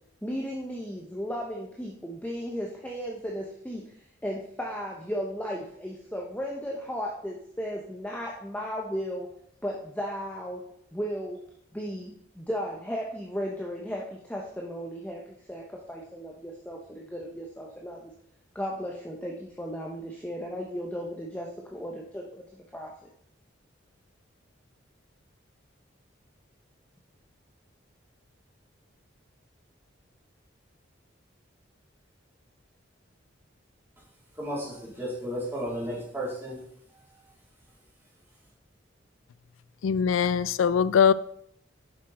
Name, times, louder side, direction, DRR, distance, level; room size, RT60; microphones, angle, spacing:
voice 1, 0.2-3.8 4.2-9.3 9.6-10.6 10.9-11.4 11.7-15.2 15.5-18.0 18.5-22.4 22.7-22.9, equal, 10° left, 0.9 m, -35 dB
voice 2, 34.4-36.6, equal, 10° right, 3.4 m, -33 dB
voice 3, 39.8-41.1, left 7 dB, 85° left, 0.3 m, -22 dB
10.5 x 6.2 x 4.3 m
head